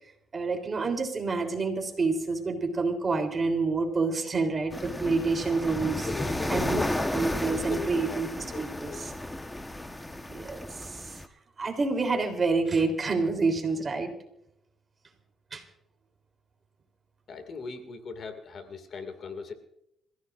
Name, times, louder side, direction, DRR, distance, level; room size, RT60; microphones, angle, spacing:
voice 1, 0.3-6.1 6.5-6.8 7.1-9.1 10.3-11.2 11.6-14.1 15.5-15.6, right 3 dB, 35° right, 5 dB, 3.5 m, -28 dB
sound 1, 4.7-11.3, left 1 dB, 10° left, 1.2 m, -33 dB
voice 2, 5.7-6.9 7.4-8.2 8.5-9.0 17.3-19.5, left 5 dB, 55° left, 8 dB, 2.3 m, -39 dB
27.0 x 15.5 x 2.6 m, 0.79 s
cardioid pair, 90°, 0 cm